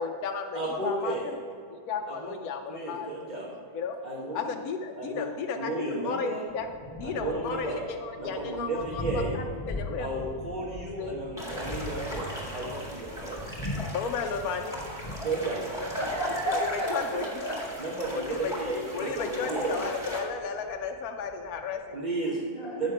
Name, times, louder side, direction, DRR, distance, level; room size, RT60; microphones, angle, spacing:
voice 1, 0.0-1.4 1.7-3.1 3.7-4.0 4.3-6.7 7.0-10.3 11.0-11.4 13.9-14.8 16.5-17.4 18.1-18.5 18.9-22.1, left 5 dB, 75° left, 4 dB, 1.1 m, -34 dB
voice 2, 0.5-1.3 2.1-2.3 2.7-3.5 4.0-4.4 5.0-5.3 5.5-6.4 7.0-7.8 8.2-9.3 10.0-13.5 15.2-15.7 17.8-19.8 21.9-22.4 22.8-22.9, right 2 dB, 30° right, -6 dB, 1.2 m, -33 dB
Thunder, 6.5-21.8, left 1 dB, 15° left, 1.3 m, -41 dB
sound 1, 11.4-20.2, equal, ahead, 1.9 m, -38 dB
voice 3, 15.8-17.6 22.3-22.9, equal, 40° left, -2 dB, 1.5 m, -32 dB
9.3 x 6.5 x 4.9 m, 2.3 s
omnidirectional pair, 1.6 m